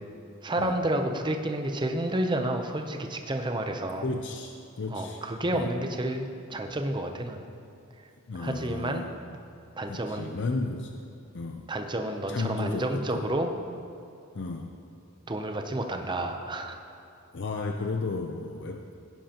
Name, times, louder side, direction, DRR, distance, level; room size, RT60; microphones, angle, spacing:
voice 1, 0.4-4.1 4.9-7.4 8.4-9.1 9.8-10.3 11.7-13.5 15.3-16.8, right 1 dB, 20° right, 5 dB, 0.6 m, -30 dB
voice 2, 4.0-5.2 5.5-5.7 8.3-9.1 9.9-11.1 11.3-11.7 12.3-13.3 14.3-14.7 17.3-18.9, left 3 dB, 55° left, 3 dB, 0.6 m, -33 dB
16.5 x 10.5 x 2.9 m, 2.7 s
head